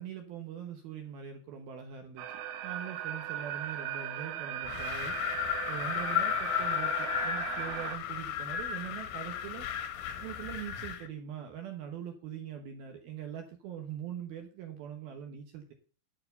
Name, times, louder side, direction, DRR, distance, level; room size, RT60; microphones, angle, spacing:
voice 1, 0.0-2.3 2.6-5.2 5.7-9.7 10.2-15.7, right 9 dB, 70° right, 5 dB, 2.4 m, -42 dB
sound 1, 2.2-8.0, right 10 dB, 90° right, 3.5 m, -38 dB
Wind, 4.6-11.1, left 10 dB, 80° left, 3.9 m, -34 dB
11.5 x 7.0 x 5.4 m, 0.41 s
omnidirectional pair, 5.5 m